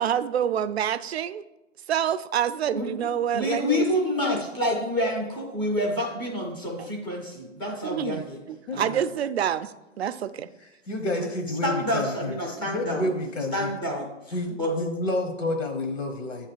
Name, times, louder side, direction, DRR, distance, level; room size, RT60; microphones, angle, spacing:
voice 1, 0.0-1.4 1.9-3.8 7.9-8.2 8.7-9.7 10.0-10.5, right 9 dB, 55° right, 14 dB, 0.5 m, -26 dB
voice 2, 2.7-8.4 8.7-9.0 11.6-13.0 13.5-14.8, left 1 dB, ahead, -2 dB, 0.5 m, -28 dB
voice 3, 10.6-12.3 12.7-13.7 14.3-16.5, left 2 dB, 85° left, 4 dB, 1.1 m, -29 dB
8.4 x 3.2 x 6.5 m, 0.99 s
hypercardioid pair, 145°, 37 cm